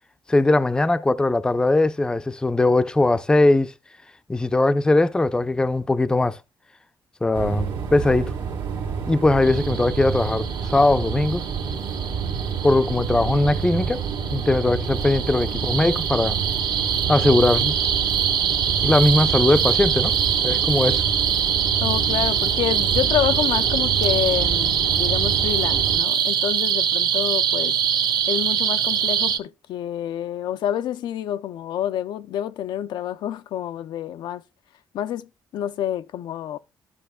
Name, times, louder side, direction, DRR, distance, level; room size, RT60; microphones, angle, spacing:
voice 1, 0.3-3.7 4.3-6.4 7.2-8.3 9.1-11.4 12.6-14.0 14.3-16.4 17.1-17.7 18.8-20.1 20.4-21.0, left 2 dB, 10° left, 0.4 m, -20 dB
sound 1, 7.3-26.0, right 6 dB, 80° right, 1.7 m, -29 dB
sound 2, 9.4-29.4, right 8 dB, 65° right, 0.7 m, -24 dB
voice 2, 21.8-27.8 28.3-34.4 34.9-35.3 35.5-36.6, left 11 dB, 75° left, 0.4 m, -28 dB
12.0 x 6.1 x 2.2 m
cardioid pair, 115°, 8 cm